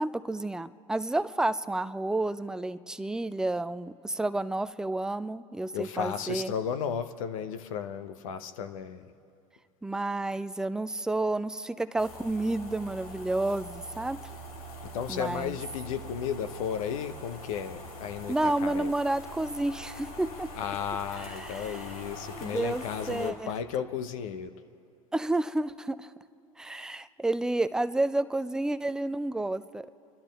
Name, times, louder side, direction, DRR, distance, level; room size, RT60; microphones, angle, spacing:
voice 1, 0.0-6.5 9.8-14.2 15.1-15.5 18.3-20.5 21.1-21.9 22.3-23.5 25.1-26.1 26.6-29.9, right 2 dB, 5° right, 13 dB, 0.3 m, -30 dB
voice 2, 5.7-9.1 14.8-18.9 20.5-24.5, left 8 dB, 65° left, 9 dB, 0.8 m, -34 dB
sound 1, 12.0-23.3, equal, 85° left, 1.9 m, -43 dB
29.5 x 11.5 x 3.3 m, 2.4 s
hypercardioid pair, 90°, 18 cm